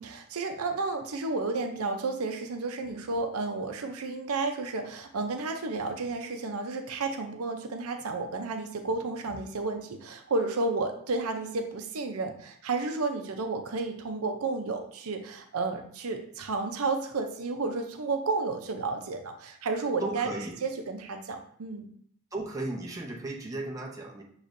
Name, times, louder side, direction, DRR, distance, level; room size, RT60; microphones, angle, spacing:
voice 1, 0.0-20.3 20.6-21.9, right 3 dB, 80° right, 5 dB, 0.6 m, -32 dB
voice 2, 20.0-20.6 22.3-24.2, right 2 dB, 15° right, -1 dB, 0.6 m, -35 dB
6.6 x 3.1 x 2.6 m, 0.64 s
head